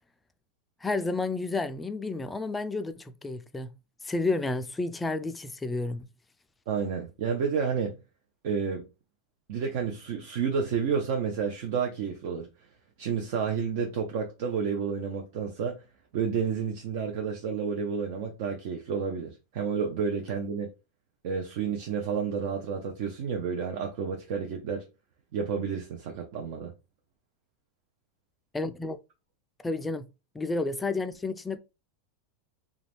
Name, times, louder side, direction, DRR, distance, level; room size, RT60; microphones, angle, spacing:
voice 1, 0.8-3.7 4.0-6.1 28.5-29.0 29.6-30.1 30.3-31.6, left 3 dB, 15° left, 0.3 m, -31 dB
voice 2, 6.7-8.0 8.4-8.9 9.5-12.5 13.0-15.8 16.1-20.7 21.2-24.8 25.3-26.7, right 6 dB, 60° right, 0.5 m, -30 dB
2.3 x 2.2 x 3.3 m
hypercardioid pair, 110°, 0 cm